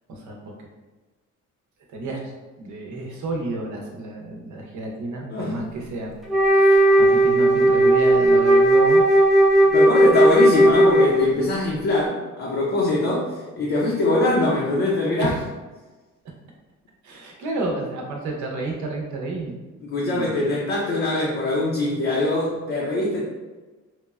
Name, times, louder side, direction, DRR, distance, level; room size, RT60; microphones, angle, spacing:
voice 1, 0.1-0.5 1.9-2.3 2.6-6.2 6.5-9.0 15.2-15.5 17.0-19.6 20.1-20.3, right 2 dB, 70° right, 0 dB, 0.7 m, -30 dB
Wind instrument woodwind instrument, 6.3-11.5, right 1 dB, ahead, 0.5 m, -16 dB
voice 2, 9.7-15.3 19.8-23.2, left 2 dB, 45° left, -5 dB, 0.6 m, -22 dB
3.0 x 2.1 x 2.3 m, 1.2 s
cardioid pair, 90°, 30 cm